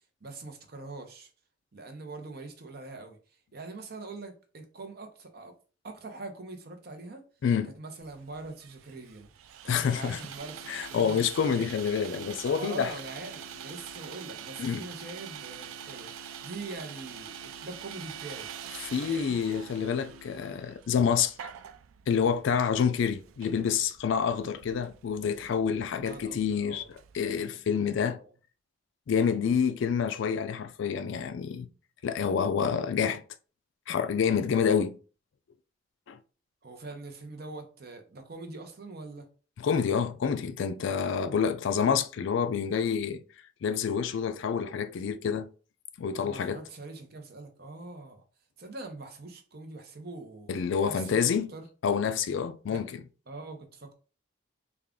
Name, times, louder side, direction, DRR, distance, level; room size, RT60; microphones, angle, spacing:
voice 1, 0.2-1.3 1.7-3.2 3.5-5.5 5.8-7.2 7.6-9.3 9.6-11.7 12.6-18.5 19.0-19.4 25.9-26.9 27.9-28.3 36.6-39.3 46.1-48.2 48.6-50.5 50.8-51.2 51.5-51.6 52.7-52.9 53.3-53.9, right 3 dB, 50° right, 0.7 m, -43 dB
voice 2, 7.4-7.7 9.7-10.2 10.7-12.9 14.6-14.8 18.9-21.5 22.1-26.8 27.1-28.2 29.1-31.7 32.0-33.2 33.9-35.0 36.1-36.2 39.6-43.2 43.6-45.5 46.0-46.6 50.5-51.5 51.8-52.9, left 7 dB, 60° left, 0.3 m, -28 dB
Sawing, 8.0-27.4, right 10 dB, 80° right, 0.3 m, -46 dB
sound 1, 10.4-20.4, left 2 dB, 35° left, 1.6 m, -52 dB
3.5 x 2.3 x 3.6 m
head